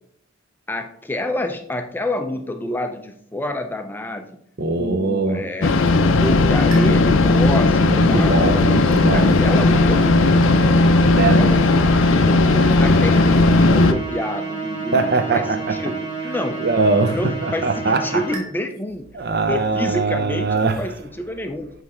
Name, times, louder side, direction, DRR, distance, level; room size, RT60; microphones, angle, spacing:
voice 1, 0.7-4.4 4.8-8.4 9.1-10.5 11.1-12.5 12.8-16.6 17.1-19.1 19.5-21.7, left 1 dB, 10° left, 0.4 m, -28 dB
voice 2, 4.6-5.4 7.8-9.3 11.1-11.4 14.9-15.8 16.6-18.2 19.1-20.8, right 3 dB, 50° right, 0.6 m, -21 dB
sound 1, 5.6-13.9, left 2 dB, 80° left, 0.5 m, -15 dB
sound 2, 6.7-18.4, right 3 dB, 25° right, 1.5 m, -32 dB
9.3 x 3.2 x 3.5 m
head